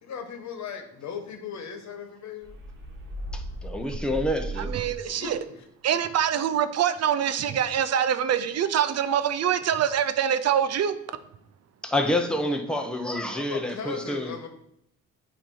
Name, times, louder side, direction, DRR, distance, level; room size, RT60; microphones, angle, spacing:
voice 1, 0.0-2.6 5.0-5.6 13.2-14.5, left 6 dB, 65° left, 6 dB, 1.2 m, -38 dB
sound 1, 2.4-5.2, right 1 dB, 40° right, 1.6 m, -36 dB
voice 2, 3.3-4.7 11.8-14.3, left 1 dB, 5° left, 4 dB, 0.9 m, -28 dB
voice 3, 4.6-5.4 5.8-11.0, right 9 dB, 55° right, 11 dB, 0.5 m, -24 dB
8.3 x 3.0 x 5.6 m, 0.74 s
cardioid pair, 90°, 30 cm